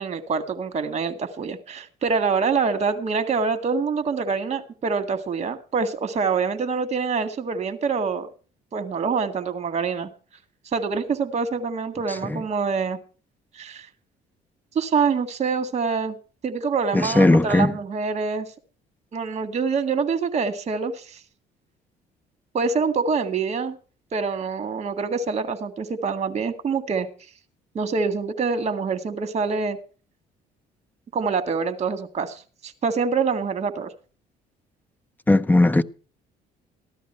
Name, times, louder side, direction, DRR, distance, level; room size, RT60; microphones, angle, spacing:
voice 1, 0.0-8.3 8.7-10.1 10.7-13.0 13.6-13.9 14.8-16.2 16.4-18.5 19.1-21.2 22.5-23.8 24.1-27.1 27.8-29.8 31.1-33.9, right 5 dB, 40° right, 1.9 m, -25 dB
voice 2, 12.1-12.4 16.9-17.7 35.3-35.8, left 2 dB, 10° left, 0.7 m, -18 dB
15.0 x 12.0 x 4.4 m
cardioid pair, 110°, 17 cm